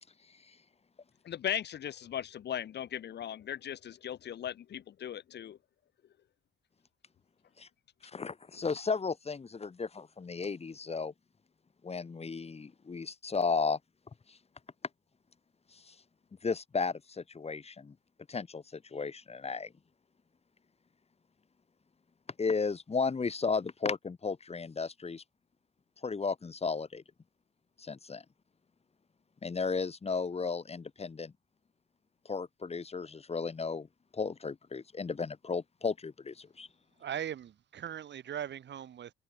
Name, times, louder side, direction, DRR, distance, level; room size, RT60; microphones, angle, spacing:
voice 1, 1.2-5.6, left 10 dB, 60° left, 1.3 m, -38 dB
voice 2, 8.1-11.1 11.8-13.8 14.3-14.4 15.7-15.9 16.4-17.9 18.3-19.7 22.4-25.2 26.0-27.0 27.8-28.2 29.4-31.3 32.2-33.9 34.1-36.7, left 4 dB, 30° left, 2.7 m, -34 dB
voice 3, 37.0-39.1, right 9 dB, 65° right, 4.8 m, -39 dB
cardioid pair, 90°, 20 cm